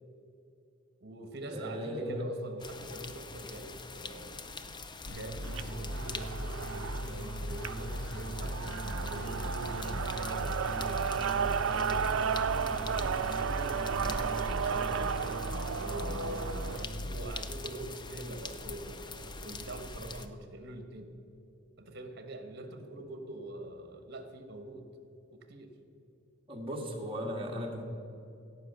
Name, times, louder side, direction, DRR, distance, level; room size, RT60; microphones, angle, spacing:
voice 1, 1.0-4.4 5.1-13.1 14.6-15.2 15.8-21.1 21.8-24.9 25.3-25.8, right 1 dB, 55° right, 7 dB, 1.4 m, -44 dB
voice 2, 1.5-2.3 13.9-14.2 26.5-27.8, equal, 25° right, 0 dB, 1.7 m, -37 dB
sound 1, 2.6-20.3, left 3 dB, 25° left, 0.5 m, -44 dB
sound 2, 5.1-17.3, equal, 65° left, 1.0 m, -38 dB
sound 3, 5.4-16.8, right 7 dB, 85° right, 0.4 m, -34 dB
16.5 x 5.6 x 6.8 m, 2.7 s
head